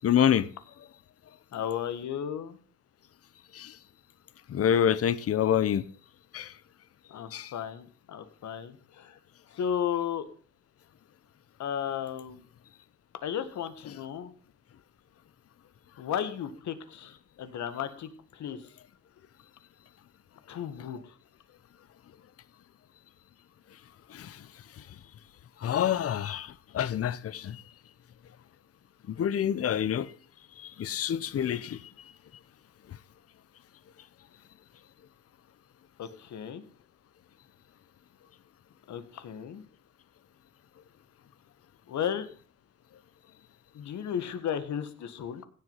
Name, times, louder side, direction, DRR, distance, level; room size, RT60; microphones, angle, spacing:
voice 1, 0.0-0.5 3.5-3.7 4.5-5.8 6.3-6.5 7.3-7.5 24.1-24.3 25.6-27.6 29.2-30.1 30.6-31.8, left 9 dB, 50° left, 0.9 m, -27 dB
voice 2, 1.5-2.6 7.1-9.2 9.5-10.2 11.6-12.4 13.2-14.3 16.0-18.7 20.5-21.2 36.0-36.6 38.9-39.6 41.9-42.3 43.7-45.5, left 9 dB, 70° left, 1.8 m, -34 dB
16.0 x 8.0 x 5.7 m
cardioid pair, 90°, 30 cm